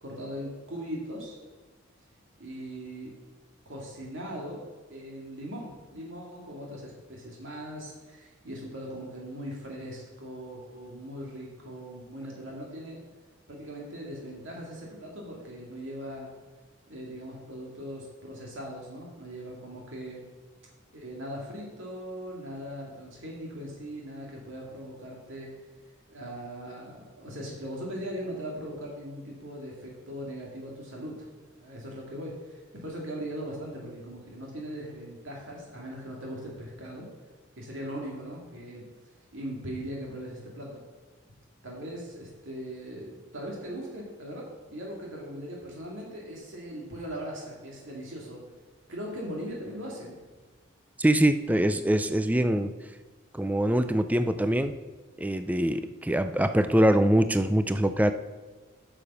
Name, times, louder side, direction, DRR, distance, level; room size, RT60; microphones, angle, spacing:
voice 1, 0.0-1.4 2.4-3.1 3.7-4.6 4.9-13.0 13.5-16.3 16.9-20.2 20.9-25.5 26.1-31.3 31.5-37.1 37.6-38.9 39.3-40.8 41.6-48.4 48.9-50.2, equal, 65° right, -2 dB, 2.2 m, -39 dB
voice 2, 51.0-52.7 53.3-54.8 55.2-58.1, right 1 dB, 10° right, 10 dB, 0.4 m, -24 dB
9.0 x 6.8 x 5.6 m, 1.3 s
head